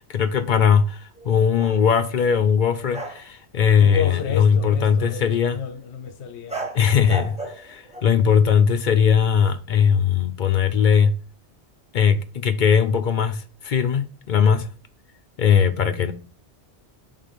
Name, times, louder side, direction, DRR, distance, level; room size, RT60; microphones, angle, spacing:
voice 1, 0.0-5.6 6.7-11.1 11.9-14.7 15.4-16.1, left 7 dB, 55° left, 0.6 m, -19 dB
sound 1, 1.2-1.9 2.9-3.3 3.6-4.3 6.5-8.2, right 2 dB, 5° right, 0.7 m, -35 dB
voice 2, 3.8-7.3, left 6 dB, 85° left, 0.9 m, -32 dB
5.8 x 3.7 x 5.2 m
omnidirectional pair, 1.1 m